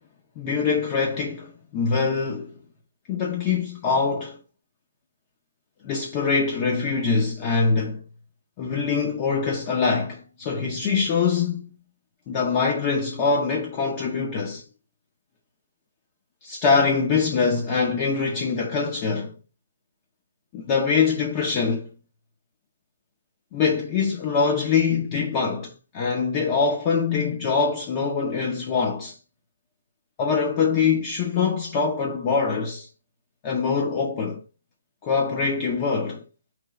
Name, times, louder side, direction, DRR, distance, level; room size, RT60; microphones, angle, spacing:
voice 1, 0.4-2.5 3.1-4.4 5.8-8.0 8.6-11.7 12.3-14.6 16.4-19.3 20.5-21.9 23.5-29.2 30.2-32.9 33.4-34.4 35.0-36.2, left 5 dB, 25° left, 0.7 m, -24 dB
3.4 x 3.0 x 4.6 m
figure-of-eight pair, 150°, 0 cm